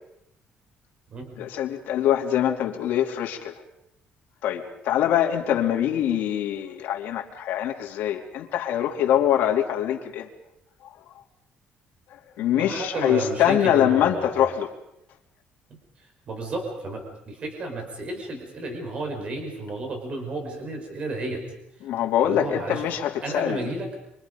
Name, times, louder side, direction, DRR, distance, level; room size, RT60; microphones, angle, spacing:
voice 1, 1.4-3.6 4.4-10.3 12.4-14.7 21.8-23.7, left 10 dB, 80° left, 1 dB, 3.2 m, -24 dB
voice 2, 12.5-14.5 15.7-21.4 22.2-22.8 23.2-23.9, right 2 dB, 35° right, 3 dB, 5.4 m, -32 dB
27.0 x 25.5 x 5.5 m, 0.78 s
cardioid pair, 175°, 3 cm